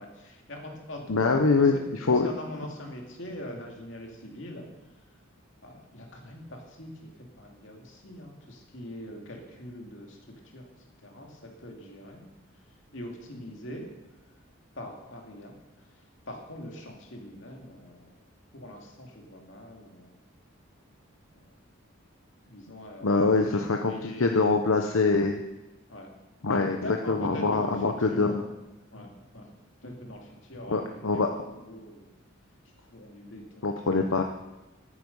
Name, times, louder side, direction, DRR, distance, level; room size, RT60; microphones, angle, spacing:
voice 1, 0.0-1.8 2.1-4.7 5.6-10.7 11.0-12.3 12.9-13.9 14.7-15.9 16.3-18.1 18.5-20.2 21.3-21.4 22.5-23.2 23.4-24.8 25.9-28.5 28.9-29.5 29.8-32.1 32.8-34.1, left 1 dB, 60° left, 1 dB, 2.6 m, -42 dB
voice 2, 1.1-2.3 23.0-25.4 26.4-28.4 30.7-31.3 33.6-34.2, left 3 dB, 80° left, 4 dB, 0.9 m, -24 dB
14.5 x 9.7 x 5.5 m, 1.0 s
head